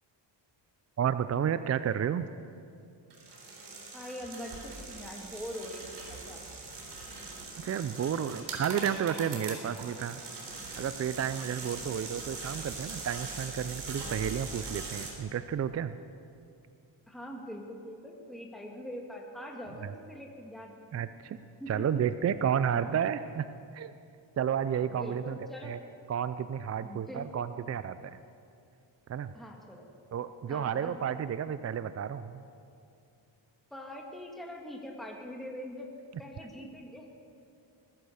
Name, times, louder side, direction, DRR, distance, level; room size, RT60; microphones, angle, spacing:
voice 1, 1.0-2.3 7.6-10.2 10.8-15.9 20.9-21.4 21.7-23.5 23.7-23.9 24.4-25.4 25.6-25.8 26.1-28.2 29.1-29.3 30.1-32.4, right 8 dB, 35° right, 13 dB, 0.4 m, -31 dB
sound 1, 3.1-15.1, right 3 dB, 60° right, 3.8 m, -41 dB
voice 2, 3.9-6.5 17.1-21.0 21.6-21.9 22.7-23.0 24.9-25.7 26.8-27.4 29.3-29.9 30.5-31.0 33.7-35.9 36.2-37.1, equal, ahead, 0 dB, 1.8 m, -43 dB
20.5 x 10.5 x 6.5 m, 2.5 s
cardioid pair, 100°, 46 cm